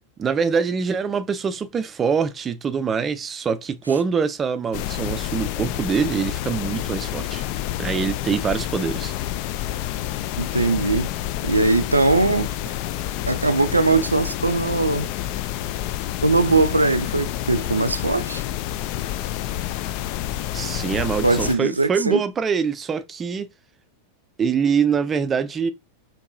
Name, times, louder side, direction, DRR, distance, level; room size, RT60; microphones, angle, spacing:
voice 1, 0.2-7.5 7.8-9.1 20.5-23.5 24.4-25.7, right 6 dB, 20° right, 0.4 m, -24 dB
sound 1, 4.7-21.5, left 13 dB, 45° left, 0.3 m, -28 dB
voice 2, 10.4-11.1 11.4-12.5 13.3-15.1 16.2-18.4 21.2-22.2, right 3 dB, 80° right, 0.4 m, -20 dB
4.5 x 2.9 x 2.6 m
figure-of-eight pair, 90°, 0 cm